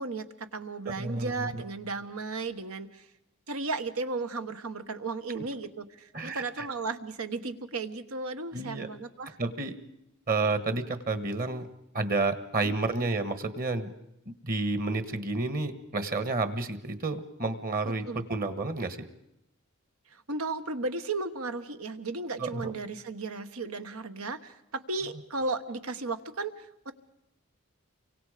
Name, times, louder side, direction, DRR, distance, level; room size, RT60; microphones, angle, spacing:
voice 1, 0.0-3.1 3.5-9.4 12.6-13.1 17.8-18.2 20.1-26.9, right 3 dB, 90° right, 9 dB, 1.3 m, -35 dB
voice 2, 1.0-1.6 5.3-5.4 6.1-6.7 8.5-8.9 9.4-9.7 10.3-11.7 11.9-13.9 14.4-19.1 22.4-22.7, right 3 dB, 40° right, 11 dB, 1.4 m, -30 dB
28.5 x 24.5 x 5.1 m, 0.84 s
head